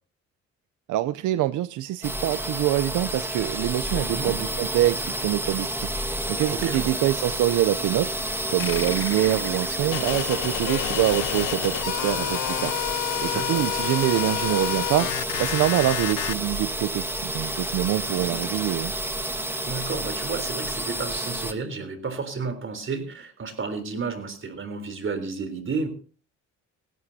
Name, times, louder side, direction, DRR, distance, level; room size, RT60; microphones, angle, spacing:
voice 1, 0.9-5.9 6.3-8.1 8.5-12.8 13.2-15.1 15.4-18.9, right 14 dB, 80° right, 15 dB, 0.6 m, -25 dB
sound 1, 2.0-21.5, right 1 dB, 5° right, 1.7 m, -30 dB
voice 2, 4.0-4.3 6.5-6.9 13.2-13.7 18.1-18.4 19.7-25.9, right 4 dB, 40° right, 9 dB, 3.7 m, -32 dB
sound 2, 8.6-11.6, left 9 dB, 50° left, 0.9 m, -39 dB
sound 3, 9.9-16.4, left 16 dB, 80° left, 0.7 m, -29 dB
19.0 x 16.0 x 2.8 m, 0.39 s
cardioid pair, 90°, 30 cm